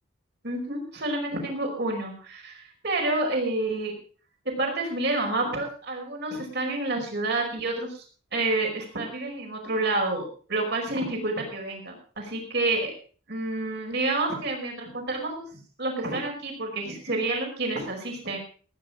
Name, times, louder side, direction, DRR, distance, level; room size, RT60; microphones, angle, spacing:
voice 1, 0.4-3.9 4.5-8.0 8.3-12.9 13.3-15.5 15.8-18.4, right 2 dB, 55° right, 1 dB, 5.3 m, -29 dB
17.5 x 9.9 x 5.0 m, 0.40 s
head